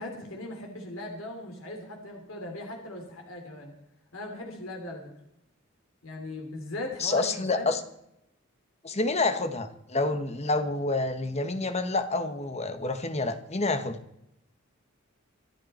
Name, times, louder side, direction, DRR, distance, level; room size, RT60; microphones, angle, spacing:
voice 1, 0.0-3.7 4.1-5.1 6.0-7.7, left 1 dB, 75° left, 2 dB, 3.1 m, -39 dB
voice 2, 7.0-7.8 8.8-14.0, left 2 dB, 30° left, 9 dB, 1.4 m, -28 dB
25.5 x 8.8 x 4.4 m, 0.80 s
head